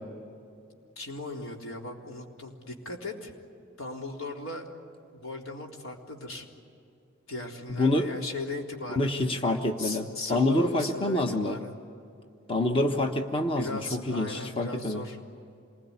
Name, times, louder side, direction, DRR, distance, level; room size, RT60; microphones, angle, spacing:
voice 1, 1.0-3.3 3.8-4.7 5.1-6.5 7.3-9.1 9.8-11.7 13.6-15.2, left 2 dB, 90° left, 0 dB, 3.9 m, -37 dB
voice 2, 7.7-8.1 9.0-11.6 12.5-15.0, left 1 dB, 25° left, 5 dB, 1.3 m, -27 dB
27.5 x 21.0 x 9.7 m, 2.5 s
head